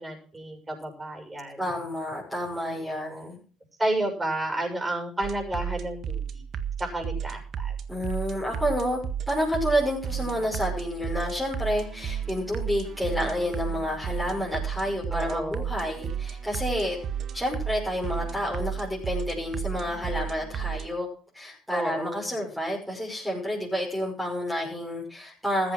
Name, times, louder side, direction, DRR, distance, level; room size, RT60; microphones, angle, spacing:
voice 1, 0.0-1.6 2.6-3.4 3.8-6.4 6.8-7.7 15.1-15.7 21.7-22.3, right 1 dB, 20° right, 4 dB, 6.9 m, -31 dB
voice 2, 1.6-3.4 7.9-9.0 9.3-17.0 17.3-21.1 21.3-25.7, equal, ahead, -3 dB, 5.9 m, -29 dB
sound 1, 5.2-20.9, right 8 dB, 55° right, 1.6 m, -33 dB
15.0 x 8.7 x 6.1 m, 0.41 s
supercardioid pair, 75°, 0 cm